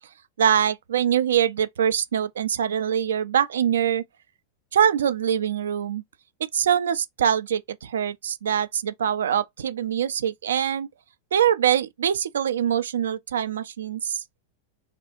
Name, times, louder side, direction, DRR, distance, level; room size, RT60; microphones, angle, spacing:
voice 1, 0.4-4.0 4.7-6.0 6.5-10.9 11.3-14.2, right 9 dB, 65° right, 0.3 m, -23 dB
3.3 x 2.3 x 2.8 m
figure-of-eight pair, 90°, 0 cm